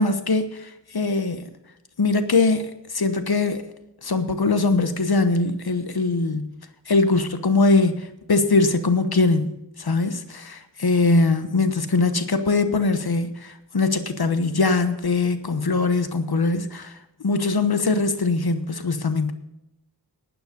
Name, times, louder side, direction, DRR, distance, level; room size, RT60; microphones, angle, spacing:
voice 1, 0.0-1.5 2.0-3.7 4.0-6.5 6.9-19.3, left 3 dB, 60° left, 10 dB, 1.1 m, -22 dB
12.0 x 9.2 x 5.3 m, 0.86 s
wide cardioid pair, 45°, 42 cm